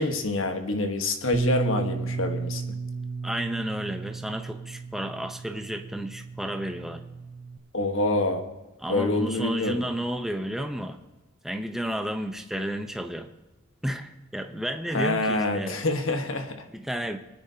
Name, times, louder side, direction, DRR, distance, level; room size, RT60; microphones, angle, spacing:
voice 1, 0.0-2.8 7.7-8.4 8.9-9.8 14.9-16.6, left 2 dB, 75° left, 5 dB, 1.4 m, -26 dB
Bass guitar, 1.3-7.6, right 4 dB, 35° right, 0.8 m, -33 dB
voice 2, 3.2-7.0 8.8-11.0 11.4-13.3 13.8-15.8 16.7-17.2, right 1 dB, ahead, 5 dB, 0.7 m, -32 dB
23.0 x 9.9 x 2.8 m, 1.1 s
head